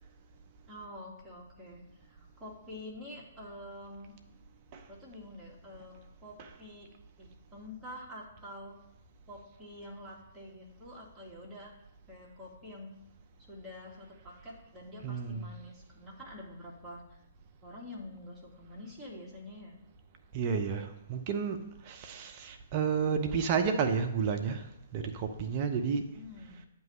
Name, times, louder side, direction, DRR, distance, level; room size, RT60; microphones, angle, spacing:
voice 1, 0.7-4.1 4.9-8.9 9.3-11.8 12.1-13.0 13.5-17.2 17.6-19.8 26.1-26.7, left 1 dB, 10° right, -6 dB, 2.0 m, -47 dB
voice 2, 15.0-15.5 20.3-26.1, right 6 dB, 40° right, 6 dB, 0.7 m, -31 dB
9.0 x 3.0 x 6.2 m, 0.83 s
figure-of-eight pair, 120°, 0 cm